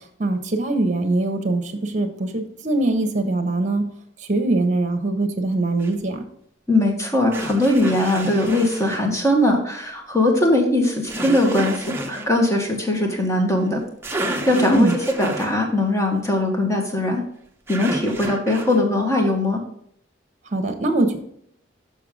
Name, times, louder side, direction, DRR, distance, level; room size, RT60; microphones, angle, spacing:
voice 1, 0.2-3.9 4.3-6.2 14.6-14.9 20.5-21.2, right 2 dB, 40° right, 6 dB, 1.1 m, -22 dB
sound 1, 5.8-5.9 7.3-9.0 11.1-12.3 13.7-13.8 14.0-15.6 17.7-18.8, right 1 dB, 15° right, 0.8 m, -31 dB
voice 2, 6.7-13.8 14.5-14.9 15.2-17.2 17.7-19.6, left 1 dB, 15° left, 1 dB, 1.5 m, -20 dB
6.8 x 6.2 x 3.7 m, 0.70 s
head